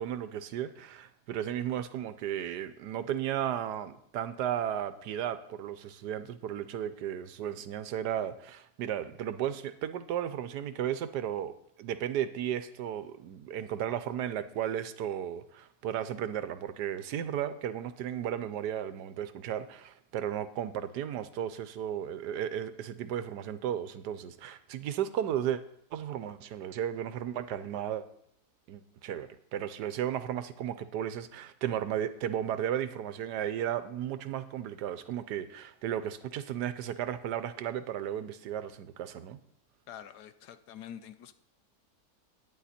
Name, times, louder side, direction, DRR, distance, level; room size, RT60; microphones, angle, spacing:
voice 1, 0.0-11.5 11.8-25.6 25.9-28.0 28.7-39.4, right 10 dB, 80° right, 12 dB, 1.3 m, -34 dB
voice 2, 39.9-41.3, left 9 dB, 75° left, 11 dB, 1.3 m, -46 dB
11.0 x 9.7 x 4.3 m, 0.72 s
omnidirectional pair, 1.8 m